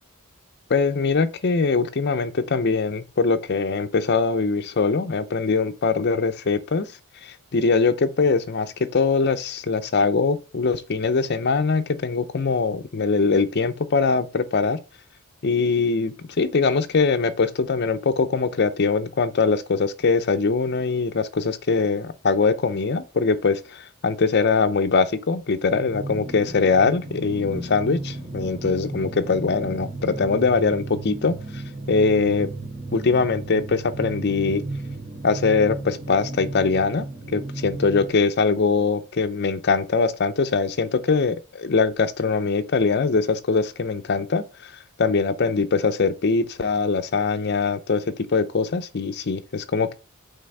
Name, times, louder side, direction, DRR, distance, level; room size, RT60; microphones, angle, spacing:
voice 1, 0.7-6.9 7.2-14.8 15.4-31.6 31.9-32.5 32.9-34.6 35.2-37.1 37.3-44.7 45.0-49.9, left 4 dB, 50° left, 0.6 m, -22 dB
sound 1, 25.7-38.1, right 2 dB, 45° right, 2.1 m, -34 dB
5.5 x 3.5 x 5.5 m
head